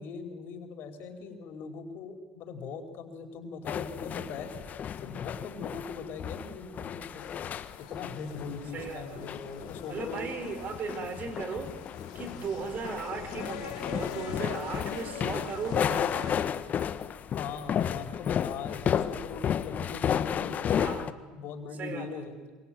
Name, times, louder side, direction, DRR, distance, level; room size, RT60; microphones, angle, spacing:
voice 1, 0.0-4.5 5.0-7.2 7.8-10.3 17.3-22.5, left 5 dB, 60° left, 5 dB, 4.9 m, -40 dB
sound 1, 3.6-21.1, left 8 dB, 45° left, 1.4 m, -33 dB
sound 2, 7.2-16.3, left 9 dB, 85° left, 3.3 m, -44 dB
voice 2, 8.7-9.3 9.9-11.8 12.1-16.5 20.7-21.2 21.7-22.3, right 5 dB, 45° right, 10 dB, 4.3 m, -37 dB
26.0 x 25.0 x 9.2 m, 1.4 s
supercardioid pair, 90°, 4 cm